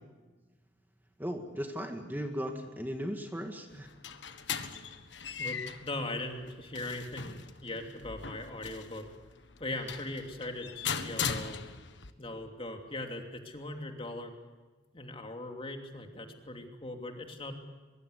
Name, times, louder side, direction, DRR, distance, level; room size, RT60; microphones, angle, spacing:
voice 1, 1.2-3.9, equal, 10° right, 4 dB, 1.9 m, -37 dB
sound 1, 3.7-12.1, left 6 dB, 75° left, 1.5 m, -39 dB
voice 2, 5.4-9.1 9.6-11.6 12.2-14.3 14.9-17.6, left 2 dB, 30° left, 4 dB, 2.9 m, -40 dB
23.5 x 23.0 x 8.2 m, 1.3 s
head